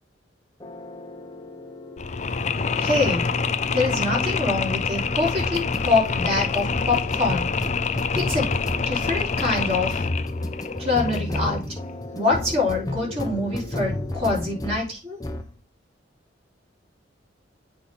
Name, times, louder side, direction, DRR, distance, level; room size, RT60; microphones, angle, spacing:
sound 1, 0.6-14.9 15.2-15.5, left 1 dB, 20° left, 0.9 m, -34 dB
Mechanisms, 2.0-11.7, left 5 dB, 40° left, 0.5 m, -26 dB
voice 1, 2.8-3.3 3.7-7.5 8.1-8.6 8.9-10.1 10.8-11.6 12.1-15.2, left 3 dB, 35° right, -4 dB, 4.7 m, -25 dB
8.4 x 4.0 x 5.3 m, 0.32 s
head